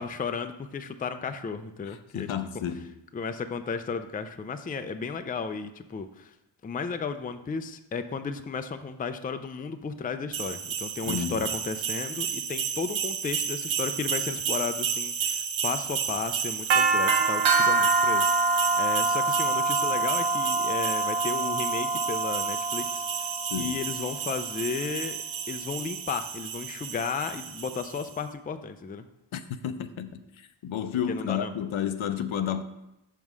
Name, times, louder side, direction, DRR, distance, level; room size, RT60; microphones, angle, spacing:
voice 1, 0.0-2.3 3.1-6.3 6.6-23.3 23.6-25.2 25.5-29.1 31.1-31.5, left 5 dB, 20° left, 0.4 m, -34 dB
voice 2, 1.9-2.9 11.1-11.5 23.5-23.8 29.3-32.6, left 8 dB, 75° left, 0.6 m, -31 dB
sound 1, 10.3-28.0, right 4 dB, 75° right, 0.8 m, -27 dB
5.5 x 4.7 x 6.2 m
wide cardioid pair, 95°, 48 cm